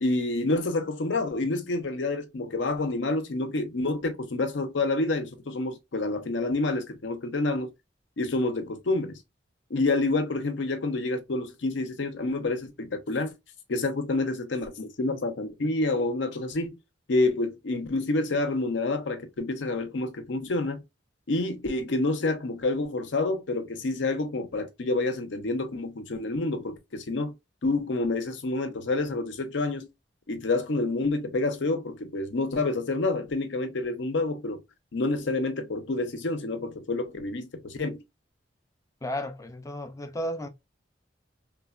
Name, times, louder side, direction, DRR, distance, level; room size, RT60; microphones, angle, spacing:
voice 1, 0.0-7.7 8.2-9.2 9.7-13.3 13.7-16.8 17.1-20.8 21.3-27.3 27.6-29.9 30.3-34.6 34.9-38.0, left 2 dB, 80° left, 0.6 m, -28 dB
voice 2, 39.0-40.5, equal, 15° left, 0.3 m, -33 dB
3.1 x 2.1 x 2.3 m
head